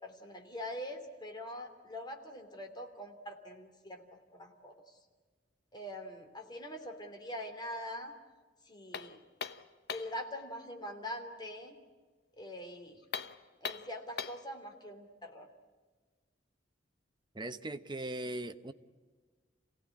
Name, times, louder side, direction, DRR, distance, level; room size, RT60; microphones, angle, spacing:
voice 1, 0.0-4.0 4.3-5.0 5.7-8.1 8.6-9.2 9.9-11.8 12.4-13.0 13.6-15.5, left 1 dB, 25° left, 4 dB, 3.1 m, -43 dB
sound 1, 8.9-10.2 13.0-14.5, left 6 dB, 65° left, 1.0 m, -41 dB
voice 2, 17.3-18.7, right 1 dB, 25° right, 9 dB, 0.9 m, -39 dB
27.5 x 17.0 x 9.9 m, 1.4 s
head